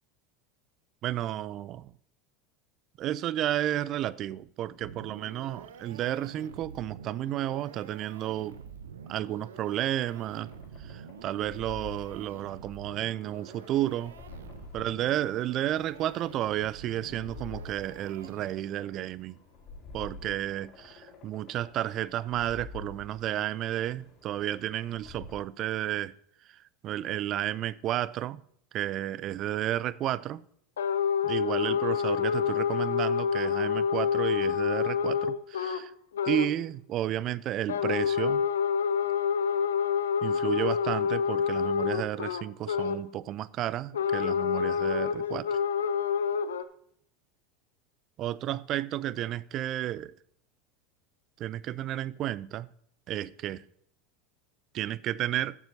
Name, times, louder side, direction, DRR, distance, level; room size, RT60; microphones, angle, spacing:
voice 1, 1.0-1.9 3.0-8.6 9.1-10.5 10.8-14.1 14.7-19.4 19.9-26.1 26.8-28.4 28.7-30.4 31.2-35.9 36.3-38.4 40.2-45.6 48.2-50.1 51.4-52.7 53.1-53.6 54.7-55.6, right 12 dB, 45° right, 0.4 m, -32 dB
sound 1, 4.8-18.9, right 7 dB, 80° right, 0.7 m, -48 dB
sound 2, 9.9-25.4, left 3 dB, 45° left, 4.0 m, -49 dB
sound 3, 30.8-35.8 36.1-36.5 37.7-43.1 43.9-46.6, left 7 dB, 80° left, 0.6 m, -27 dB
14.5 x 7.2 x 2.7 m
hypercardioid pair, 80°, 0 cm